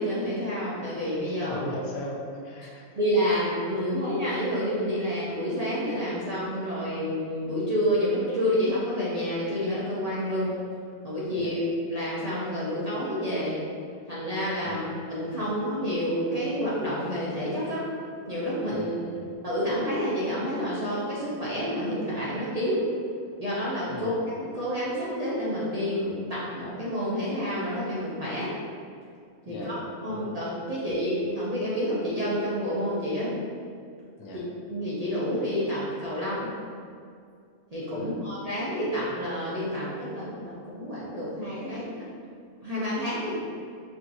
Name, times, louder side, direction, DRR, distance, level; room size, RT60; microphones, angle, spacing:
voice 1, 0.0-1.6 3.0-10.6 11.0-11.6 11.9-13.6 14.1-17.8 18.3-18.9 19.4-22.9 23.4-24.1 24.5-28.6 29.5-29.7 30.0-33.4 34.7-36.5 37.7-42.0 42.6-43.4, equal, 35° right, -9 dB, 0.6 m, -29 dB
voice 2, 1.4-2.9 11.4-11.5 14.6-14.8 18.7-19.3 23.9-24.1 29.5-30.4 30.9-31.0 34.2-34.5 37.9-38.3, left 1 dB, 85° left, -1 dB, 1.2 m, -39 dB
5.4 x 3.0 x 2.6 m, 2.3 s
omnidirectional pair, 1.5 m